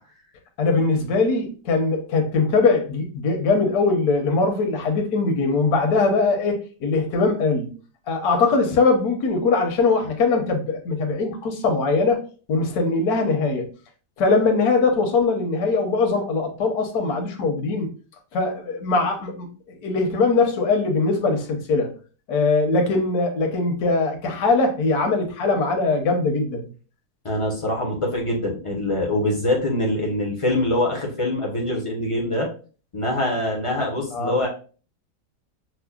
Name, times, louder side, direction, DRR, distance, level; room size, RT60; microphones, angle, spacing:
voice 1, 0.6-7.7 8.1-13.7 14.2-17.9 18.3-19.5 19.8-21.9 22.3-26.7 34.1-34.3, left 3 dB, 70° left, 1.3 m, -21 dB
voice 2, 27.2-32.5 32.9-34.5, left 1 dB, 40° left, 0.4 m, -24 dB
5.9 x 2.1 x 2.3 m
omnidirectional pair, 1.7 m